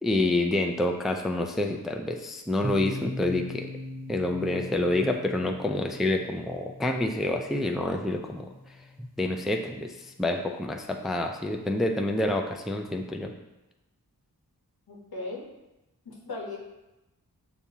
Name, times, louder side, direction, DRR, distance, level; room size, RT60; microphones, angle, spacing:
voice 1, 0.0-3.7 4.1-8.5 9.0-13.3, left 1 dB, ahead, 3 dB, 0.3 m, -28 dB
sound 1, 2.6-10.3, left 1 dB, 25° right, 0.9 m, -41 dB
voice 2, 14.9-15.5 16.0-16.6, left 2 dB, 75° left, -1 dB, 1.0 m, -37 dB
6.8 x 2.3 x 2.7 m, 0.98 s
cardioid pair, 50°, 37 cm